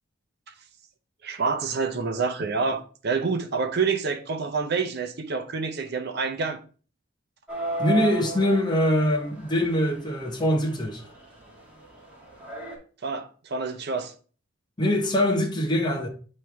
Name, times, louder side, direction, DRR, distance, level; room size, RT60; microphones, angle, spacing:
voice 1, 1.2-6.6 13.0-14.1, right 4 dB, 55° right, 0.7 m, -27 dB
sound 1, 7.5-12.8, right 3 dB, 5° right, 1.8 m, -36 dB
voice 2, 7.8-11.0 14.8-16.1, left 1 dB, 20° left, 0.9 m, -23 dB
8.8 x 3.2 x 3.3 m
head